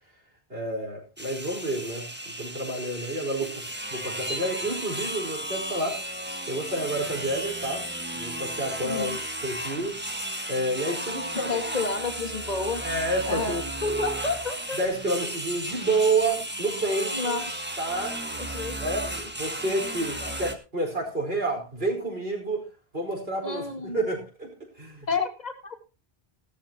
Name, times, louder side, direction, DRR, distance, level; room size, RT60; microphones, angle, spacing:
voice 1, 0.5-3.6 3.9-6.0 6.5-10.0 10.5-11.6 12.8-13.6 14.8-17.4 17.8-18.4 18.8-19.1 19.4-22.6 22.9-25.1, right 2 dB, 70° right, 1 dB, 5.1 m, -29 dB
sound 1, 1.2-20.5, right 1 dB, 10° right, 1.5 m, -34 dB
voice 2, 8.8-9.2 11.3-12.8 13.3-14.8 17.1-17.7 18.4-18.8 19.0-19.3 20.2-20.4 23.4-24.1 25.1-25.8, left 3 dB, 40° left, 8 dB, 2.0 m, -31 dB
16.5 x 13.5 x 2.9 m, 0.29 s
omnidirectional pair, 1.0 m